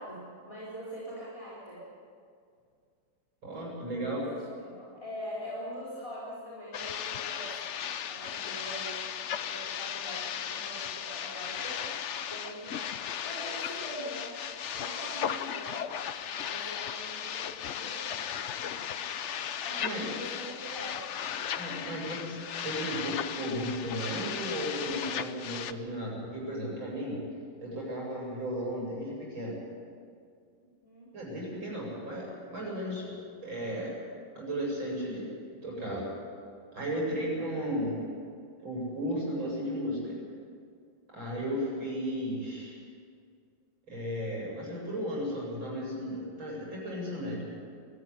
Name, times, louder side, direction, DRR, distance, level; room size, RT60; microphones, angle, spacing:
voice 1, 0.0-1.8 4.0-7.5 8.1-9.0 9.4-11.8 12.3-12.8 13.2-14.4 14.7-15.9 16.4-18.8 19.6-21.0 30.8-31.1, equal, 15° left, -7 dB, 4.4 m, -43 dB
voice 2, 3.4-4.3 19.8-20.1 21.6-27.2 27.6-29.6 31.1-33.1 33.4-33.9 34.4-35.3 35.6-36.1 36.7-37.9 38.6-40.2 41.1-42.8 43.9-47.4, equal, 75° right, -4 dB, 8.6 m, -34 dB
sound 1, 6.7-25.7, left 8 dB, 90° left, 0.6 m, -36 dB
21.5 x 14.5 x 9.9 m, 2.2 s
omnidirectional pair, 2.2 m